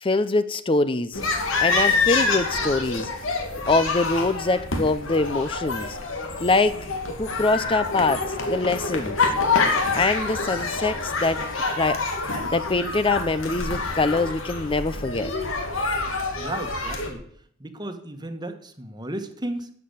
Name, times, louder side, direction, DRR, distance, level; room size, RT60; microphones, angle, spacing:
voice 1, 0.0-1.2 1.6-3.1 3.7-6.0 6.4-6.9 7.2-9.2 9.9-15.3, left 3 dB, 25° left, 14 dB, 0.6 m, -24 dB
sound 1, 1.1-17.1, left 3 dB, 90° left, 2.4 m, -26 dB
voice 2, 16.4-17.2 17.6-19.7, right 1 dB, 20° right, 7 dB, 1.3 m, -34 dB
12.0 x 7.8 x 8.1 m, 0.64 s
head